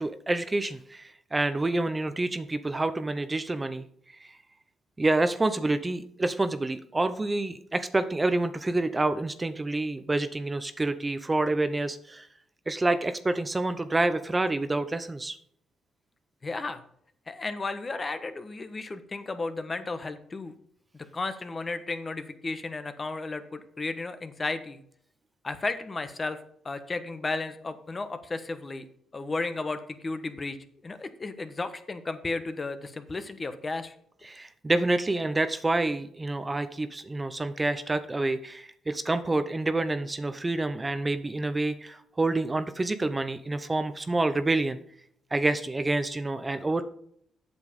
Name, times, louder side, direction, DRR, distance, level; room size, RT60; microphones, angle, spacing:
voice 1, 0.0-3.8 4.2-4.3 5.0-12.3 12.7-15.4 34.2-44.8 45.3-46.8, right 2 dB, 20° right, 10 dB, 0.7 m, -28 dB
voice 2, 16.4-16.8 17.3-20.5 20.9-24.8 25.4-26.4 26.6-28.9 29.1-30.6 30.8-33.9, left 3 dB, 30° left, 10 dB, 1.1 m, -34 dB
8.2 x 7.1 x 5.2 m, 0.67 s
cardioid pair, 90°, 0 cm